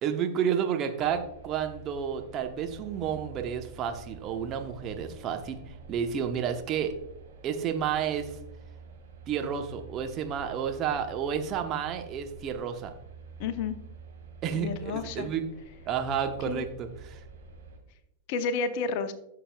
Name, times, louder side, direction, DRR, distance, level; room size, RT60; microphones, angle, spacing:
voice 1, 0.0-5.6 5.9-6.9 7.4-8.3 9.3-12.9 14.4-15.5 15.9-17.2, right 8 dB, 35° right, 5 dB, 1.0 m, -31 dB
sound 1, 1.0-17.8, right 4 dB, 60° right, 2.9 m, -48 dB
voice 2, 13.4-13.8 14.5-15.3 16.5-16.6 18.3-19.1, left 5 dB, 45° left, 11 dB, 0.7 m, -31 dB
15.5 x 6.7 x 2.3 m, 0.83 s
figure-of-eight pair, 90°, 0 cm